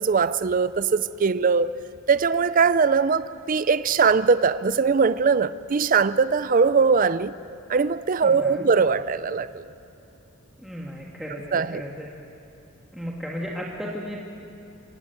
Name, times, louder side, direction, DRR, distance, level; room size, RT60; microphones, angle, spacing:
voice 1, 0.0-1.7 2.1-7.3 7.7-9.6 11.5-11.8, right 5 dB, 40° right, 14 dB, 0.4 m, -21 dB
voice 2, 8.2-8.7 10.6-12.1 12.9-14.4, equal, ahead, -3 dB, 1.8 m, -35 dB
26.5 x 16.0 x 9.0 m, 2.9 s
head